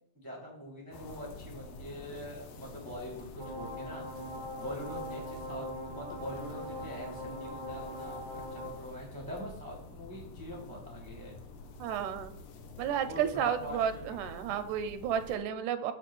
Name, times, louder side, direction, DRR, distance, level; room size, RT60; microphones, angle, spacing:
voice 1, 0.1-4.0 4.6-11.3 12.2-12.3 13.0-14.2, equal, 25° right, -3 dB, 0.4 m, -44 dB
sound 1, 0.9-15.4, left 2 dB, 70° left, 1.8 m, -48 dB
sound 2, 3.4-8.7, left 1 dB, 20° left, 0.6 m, -41 dB
voice 2, 11.8-12.3 12.8-15.9, right 9 dB, 85° right, 10 dB, 2.0 m, -32 dB
8.6 x 2.9 x 6.0 m, 0.68 s
omnidirectional pair, 3.5 m